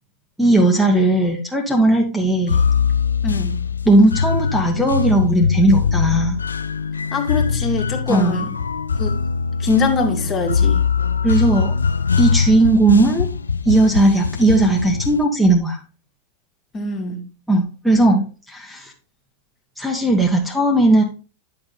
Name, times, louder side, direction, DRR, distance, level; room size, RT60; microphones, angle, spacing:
voice 1, 0.4-2.6 3.9-6.4 8.1-8.4 11.2-11.7 12.2-13.3 13.7-15.8 17.5-18.9 19.8-21.0, right 2 dB, ahead, 1 dB, 1.6 m, -17 dB
sound 1, 2.5-15.2, left 6 dB, 75° left, 0.4 m, -22 dB
voice 2, 3.2-3.6 7.1-8.5 9.0-9.2 9.6-10.9 16.7-17.2, left 4 dB, 30° left, 1 dB, 2.3 m, -22 dB
10.5 x 6.5 x 3.4 m, 0.34 s
figure-of-eight pair, 90°, 0 cm